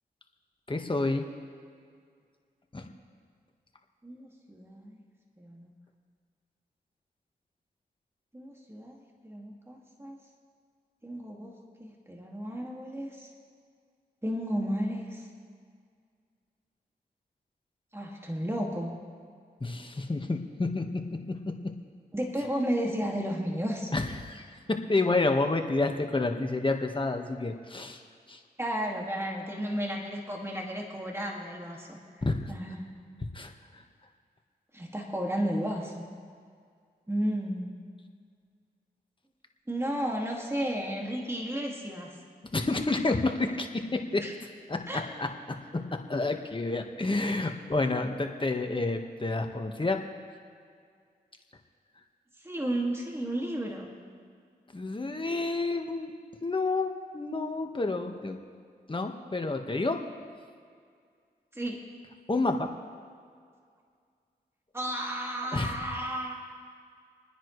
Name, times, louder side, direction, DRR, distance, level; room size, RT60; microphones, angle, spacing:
voice 1, 0.7-1.2 2.7-2.9 19.6-20.8 23.9-28.0 28.3-28.4 32.2-32.4 33.3-33.8 42.5-44.2 44.7-44.8 45.2-45.3 46.1-50.0 54.7-56.1 56.4-58.4 58.9-60.0 62.3-62.7 65.5-65.7, left 2 dB, 30° left, 4 dB, 1.6 m, -29 dB
voice 2, 4.0-5.0 5.4-5.7 8.3-9.0 9.2-10.2 11.0-13.3 14.2-15.3 17.9-19.0 22.1-23.9 28.6-32.2 32.5-32.9 34.7-36.0 37.1-37.8 39.7-42.2 44.2-44.3 44.9-45.1 52.4-53.9 61.5-61.9 64.7-66.4, equal, 15° right, -1 dB, 2.3 m, -33 dB
27.0 x 10.0 x 3.3 m, 2.1 s
cardioid pair, 50°, 17 cm